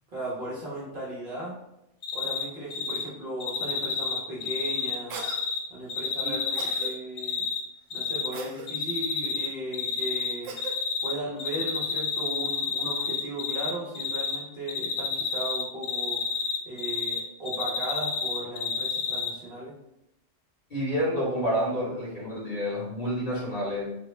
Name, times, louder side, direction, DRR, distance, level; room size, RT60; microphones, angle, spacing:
voice 1, 0.1-1.6 2.1-5.2 5.7-7.5 7.9-10.7 11.0-19.7, right 1 dB, 50° right, -5 dB, 1.0 m, -36 dB
Cricket, 2.0-2.4 2.7-3.0 3.4-5.6 5.9-7.6 7.9-8.3 8.7-9.5 9.7-11.1 11.4-13.7 14.0-14.4 14.7-17.2 17.5-19.3, left 6 dB, 70° left, 0.8 m, -29 dB
Cough, 5.1-5.4 6.5-6.9 8.3-8.7 10.4-10.8, right 4 dB, 85° right, 0.9 m, -38 dB
voice 2, 20.7-24.0, equal, 40° left, -7 dB, 1.2 m, -29 dB
3.5 x 2.1 x 3.1 m, 0.86 s
omnidirectional pair, 1.3 m